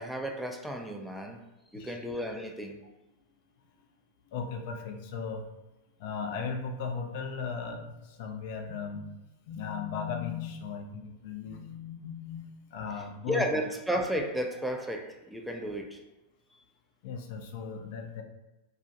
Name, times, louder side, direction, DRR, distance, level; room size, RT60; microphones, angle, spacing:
voice 1, 0.0-1.4 1.7-2.8 13.3-16.0, equal, 5° right, 2 dB, 0.4 m, -33 dB
voice 2, 4.2-5.4 6.0-9.0 9.5-13.5 17.0-18.2, left 5 dB, 60° left, 3 dB, 0.4 m, -37 dB
2.3 x 2.1 x 2.7 m, 1.0 s
hypercardioid pair, 100°, 0 cm